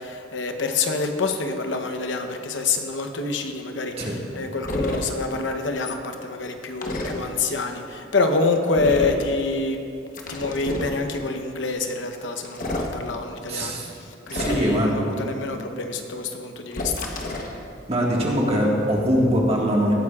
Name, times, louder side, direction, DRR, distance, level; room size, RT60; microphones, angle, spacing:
voice 1, 0.0-9.8 10.3-13.8 14.3-17.1, left 3 dB, 80° left, 6 dB, 0.9 m, -27 dB
sound 1, 4.6-5.0 6.8-7.1 8.8-9.2 10.1-10.9 12.4-12.9 14.3-14.9 16.7-17.5, left 1 dB, 45° left, 1.0 m, -29 dB
voice 2, 13.5-13.9 14.3-15.0 17.9-19.9, equal, 35° right, -2 dB, 1.7 m, -22 dB
18.5 x 9.4 x 2.4 m, 2.5 s
head